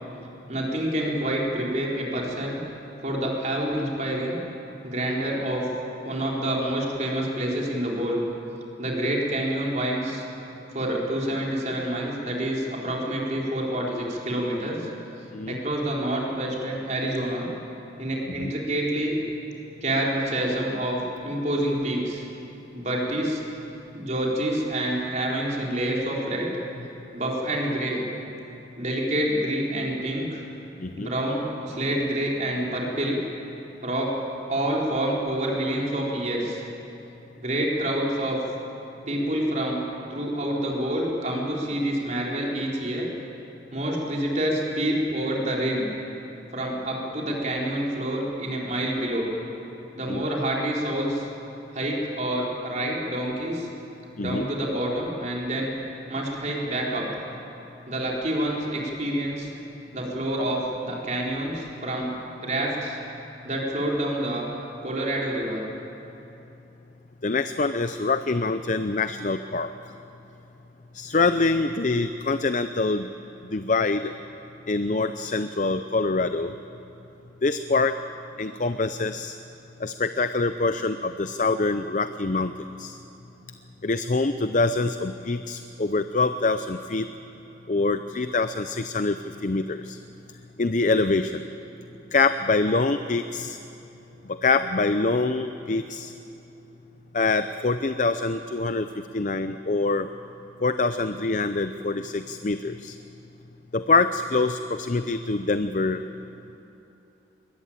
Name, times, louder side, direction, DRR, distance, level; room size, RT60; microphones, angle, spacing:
voice 1, 0.5-2.6 3.0-4.4 4.8-5.6 6.0-8.2 8.8-10.2 10.7-14.9 15.5-17.5 18.0-19.2 19.8-21.0 21.2-22.2 22.7-23.4 23.9-26.5 27.1-28.0 28.8-30.4 30.9-33.2 33.8-34.1 34.5-36.6 37.4-38.4 39.1-39.8 40.1-43.1 43.7-45.9 46.5-49.3 49.9-51.3 51.7-53.7 54.2-55.7 56.1-57.0 57.9-59.5 59.9-62.1 62.4-63.0 63.4-64.5 64.8-65.6, right 1 dB, 40° right, -2 dB, 4.5 m, -27 dB
voice 2, 67.2-69.7 70.9-73.1 73.5-74.1 74.7-76.5 77.4-77.9 78.4-79.4 79.8-82.5 82.8-83.0 83.8-87.1 87.7-90.0 90.6-91.5 92.1-93.6 94.4-96.1 97.1-100.1 100.6-103.0 103.7-106.0, left 3 dB, 45° left, 10 dB, 0.6 m, -25 dB
22.0 x 21.5 x 9.0 m, 3.0 s
head